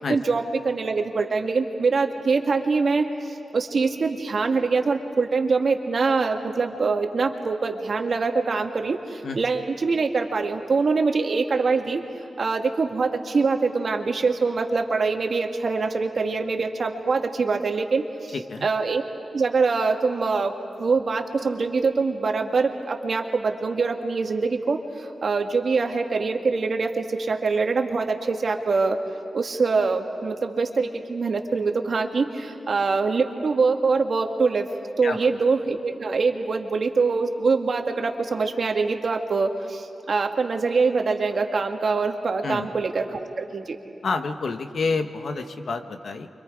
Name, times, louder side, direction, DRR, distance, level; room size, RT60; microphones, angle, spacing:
voice 1, 0.0-12.0 12.4-18.3 18.6-19.0 19.3-20.5 20.8-29.0 29.3-34.7 35.0-43.8, right 4 dB, 60° right, 4 dB, 1.8 m, -24 dB
voice 2, 18.3-18.6 35.0-35.2 42.4-42.7 44.0-46.3, left 4 dB, 70° left, 7 dB, 1.3 m, -28 dB
29.5 x 25.0 x 5.0 m, 2.8 s
cardioid pair, 60°, 0 cm